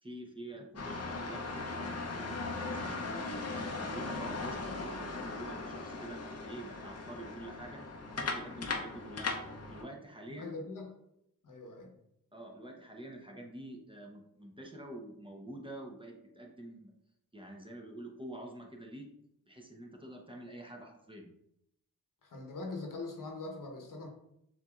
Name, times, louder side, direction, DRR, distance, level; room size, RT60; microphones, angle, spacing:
voice 1, 0.0-3.0 3.4-9.3 9.7-10.5 12.3-16.9 17.3-19.1 19.5-21.3, right 1 dB, 15° right, 1 dB, 0.8 m, -47 dB
sound 1, 0.8-9.8, left 3 dB, 45° left, 0.7 m, -38 dB
voice 2, 10.4-10.9 11.4-11.9 22.2-24.1, left 3 dB, 60° left, 2 dB, 1.1 m, -42 dB
7.0 x 2.7 x 2.4 m, 0.79 s
cardioid pair, 55°, 36 cm